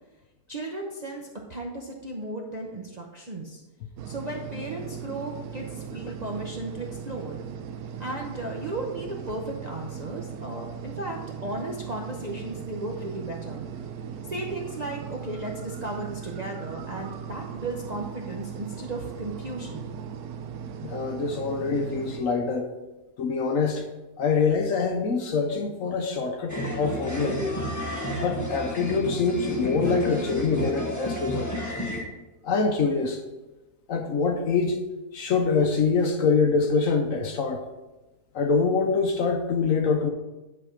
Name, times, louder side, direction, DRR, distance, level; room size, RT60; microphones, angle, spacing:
voice 1, 0.5-3.6 4.0-7.4 8.0-13.7 14.2-19.9, right 2 dB, 40° right, 0.6 m, -35 dB
sound 1, 4.0-22.2, right 7 dB, 70° right, 1.1 m, -38 dB
voice 2, 20.8-22.7 23.2-23.8 24.2-27.4 28.1-31.5 32.4-33.2 33.9-34.8 35.1-37.6 38.3-40.1, left 4 dB, 65° left, 1.0 m, -25 dB
sound 2, 26.5-32.0, equal, 10° left, 1.0 m, -31 dB
10.0 x 4.1 x 5.0 m
omnidirectional pair, 1.7 m